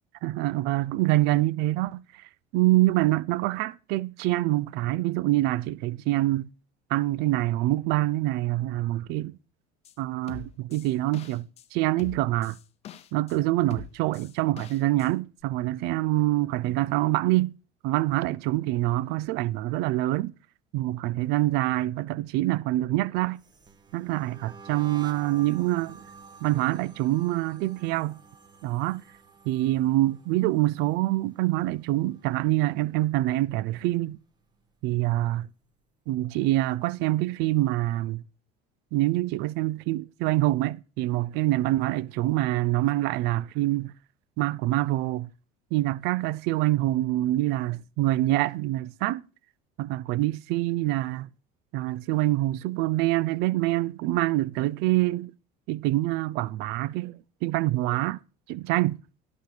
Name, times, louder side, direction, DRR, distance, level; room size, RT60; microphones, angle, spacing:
voice 1, 0.2-6.5 6.9-9.3 10.0-12.6 13.1-17.5 17.8-20.3 20.7-23.4 23.9-26.0 26.4-28.2 28.6-29.0 29.5-34.2 34.8-35.5 36.1-38.2 38.9-43.9 44.4-45.3 45.7-49.2 49.8-51.3 51.7-55.3 55.7-58.2 58.5-59.0, right 17 dB, 65° right, 0.5 m, -25 dB
sound 1, 9.8-9.9 10.3-11.7 12.0-13.4 13.7-15.1 15.4-15.5, left 10 dB, 35° left, 0.7 m, -44 dB
sound 2, 23.4-32.5 32.8-33.3 33.6-35.1, right 5 dB, 20° right, 1.4 m, -50 dB
12.0 x 6.7 x 4.8 m
cardioid pair, 145°, 19 cm